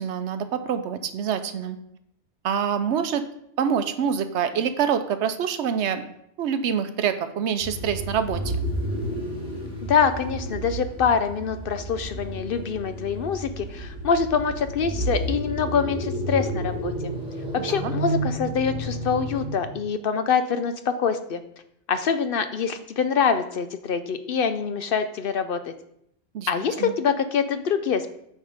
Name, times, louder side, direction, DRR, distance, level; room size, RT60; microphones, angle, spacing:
voice 1, 0.0-1.8 2.4-3.2 3.6-6.1 6.4-8.5 17.6-17.9 26.3-26.5 26.8-27.0, right 7 dB, 75° right, 10 dB, 0.9 m, -26 dB
sound 1, 7.6-19.8, right 1 dB, 5° right, 1.5 m, -31 dB
voice 2, 9.8-16.9 17.5-21.4 21.9-25.7 26.5-28.1, left 6 dB, 60° left, 10 dB, 0.7 m, -25 dB
9.0 x 3.7 x 4.9 m, 0.74 s
omnidirectional pair, 1.2 m